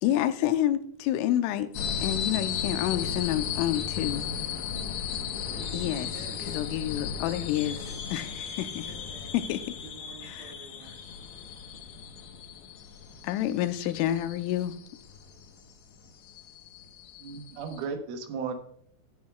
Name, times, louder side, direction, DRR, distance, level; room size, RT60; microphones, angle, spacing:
voice 1, 0.0-1.7 2.0-4.2 5.7-6.1 6.5-7.8 8.1-8.9 9.3-9.6 10.2-10.5 13.2-14.8, left 12 dB, 85° left, 3.2 m, -28 dB
sound 1, 1.8-17.8, left 7 dB, 70° left, 3.0 m, -36 dB
voice 2, 3.7-4.2 5.4-5.8 6.1-6.7 7.3-8.3 8.8-9.3 9.8-10.9, right 3 dB, 50° right, 2.9 m, -49 dB
voice 3, 17.2-18.5, right 5 dB, 80° right, 3.7 m, -35 dB
19.0 x 8.5 x 2.3 m
omnidirectional pair, 5.6 m